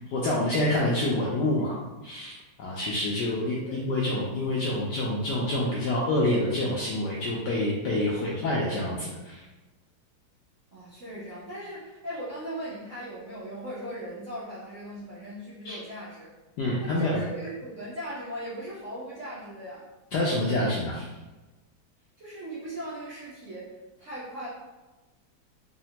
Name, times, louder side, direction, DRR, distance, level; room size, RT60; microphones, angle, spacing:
voice 1, 0.1-1.8 2.0-9.4 15.6-15.8 16.6-17.2 20.1-21.1, left 1 dB, 80° left, -5 dB, 0.9 m, -27 dB
voice 2, 10.7-16.3 16.8-19.9 22.2-24.5, equal, 65° right, -10 dB, 0.8 m, -39 dB
3.8 x 2.1 x 2.7 m, 1.1 s
omnidirectional pair, 2.3 m